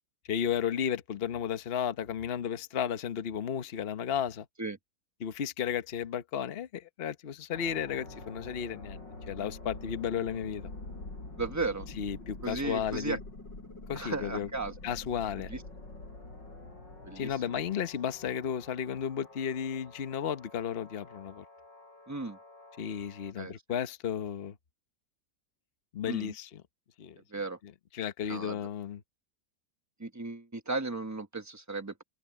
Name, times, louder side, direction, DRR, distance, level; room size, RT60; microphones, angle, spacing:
voice 1, 0.3-4.5 5.2-10.7 12.0-13.2 13.9-14.5 14.8-15.5 17.2-21.4 22.8-24.5 25.9-26.6 27.0-27.2 27.9-29.0, left 8 dB, 40° left, 1.1 m, -33 dB
sound 1, 7.5-23.3, left 2 dB, 90° left, 7.4 m, -47 dB
voice 2, 11.3-11.9 12.4-13.2 13.9-14.7 15.5-15.6 17.0-17.5 22.1-22.4 23.4-23.5 26.1-26.3 27.3-27.6 28.3-28.6 30.0-32.0, right 3 dB, 10° right, 1.0 m, -35 dB
omnidirectional pair, 1.9 m